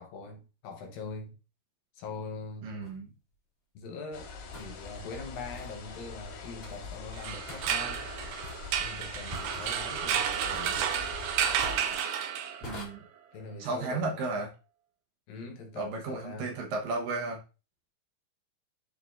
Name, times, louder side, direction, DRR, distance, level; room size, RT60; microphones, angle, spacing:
voice 1, 0.0-1.4 1.9-2.7 3.8-8.1 8.8-10.9 13.3-14.2 15.3-16.6, left 3 dB, 70° left, 2.5 m, -42 dB
voice 2, 2.6-3.1 12.6-13.0 13.6-14.5 15.8-17.4, right 3 dB, 70° right, 2.5 m, -33 dB
sound 1, 2.8-2.9 4.5-4.7 5.5-5.8 6.6-7.0 7.5-7.6 8.4-8.8 9.3-9.7 10.5-10.9 11.6-12.0 12.6-12.8, left 1 dB, 50° left, 0.7 m, -44 dB
sound 2, 4.1-11.8, left 4 dB, 90° left, 4.0 m, -43 dB
sound 3, 7.1-12.8, right 9 dB, 90° right, 1.8 m, -31 dB
11.5 x 4.3 x 2.5 m
omnidirectional pair, 4.6 m